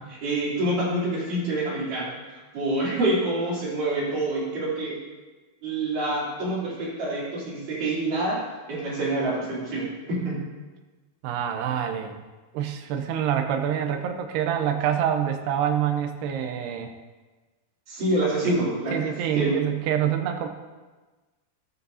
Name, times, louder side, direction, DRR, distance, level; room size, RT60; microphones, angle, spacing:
voice 1, 0.1-5.0 5.6-10.4 17.9-19.6, right 1 dB, 55° right, -7 dB, 4.8 m, -27 dB
voice 2, 11.2-12.2 12.5-16.9 18.9-20.5, right 9 dB, 85° right, 5 dB, 2.9 m, -26 dB
13.5 x 13.0 x 2.8 m, 1.2 s
omnidirectional pair, 4.6 m